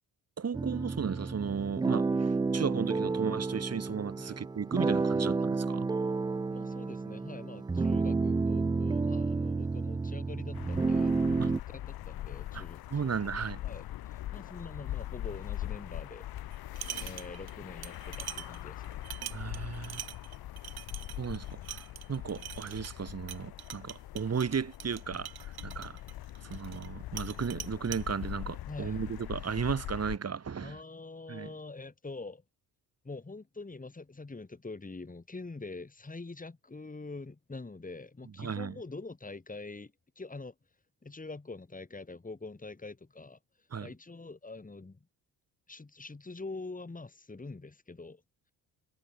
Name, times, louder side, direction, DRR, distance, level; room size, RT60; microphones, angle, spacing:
voice 1, 0.4-5.9 11.4-11.5 12.5-12.6 12.9-13.6 19.3-20.0 21.2-25.3 25.6-26.0 26.4-30.8 31.3-31.5 38.4-38.7 43.7-43.9, right 6 dB, 40° right, 2.8 m, -35 dB
sound 1, 0.5-11.6, right 4 dB, 10° right, 0.3 m, -30 dB
voice 2, 6.5-13.1 13.6-16.3 17.0-19.0 28.7-29.0 30.6-32.4 33.0-40.5 41.0-45.0 45.7-48.2, left 3 dB, 20° left, 8.0 m, -45 dB
sound 2, 10.5-30.2, left 14 dB, 65° left, 1.0 m, -42 dB
sound 3, 16.5-17.5 17.8-26.9 27.2-28.0, right 11 dB, 70° right, 5.7 m, -44 dB
cardioid pair, 90°, 39 cm